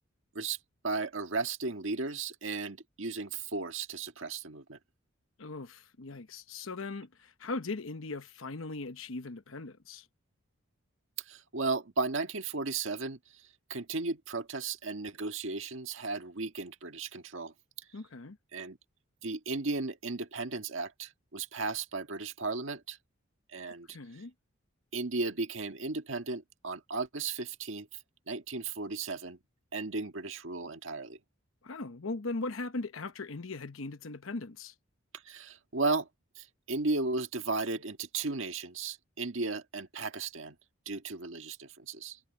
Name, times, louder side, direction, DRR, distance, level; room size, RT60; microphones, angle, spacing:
voice 1, 0.8-4.8 11.3-13.2 13.7-17.5 18.5-18.8 19.2-23.0 23.5-24.0 24.9-27.9 28.3-29.4 29.7-31.2 35.2-36.1 36.3-40.6 40.8-42.2, right 3 dB, 70° right, 1.7 m, -35 dB
voice 2, 5.4-10.1 17.9-18.4 23.9-24.3 31.6-34.7, left 3 dB, 75° left, 1.0 m, -39 dB
head